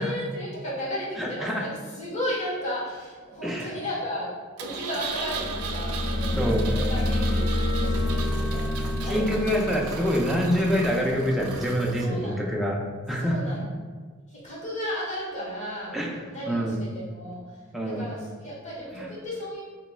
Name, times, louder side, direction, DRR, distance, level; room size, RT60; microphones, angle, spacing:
voice 1, 0.0-4.3 4.6-9.5 12.0-12.5 13.2-13.7 14.3-16.0 16.3-17.4 17.8-19.6, equal, 35° left, -7 dB, 1.2 m, -34 dB
voice 2, 1.2-1.7 3.4-3.8 6.4-6.7 9.0-12.8 13.1-13.4 15.9-16.8 17.7-18.1 18.9-19.1, equal, ahead, -3 dB, 0.4 m, -26 dB
Engine, 4.6-12.1, right 5 dB, 70° right, 0.4 m, -37 dB
sound 1, 5.1-11.8, left 1 dB, 65° left, 0.7 m, -28 dB
4.3 x 3.0 x 2.2 m, 1.5 s
head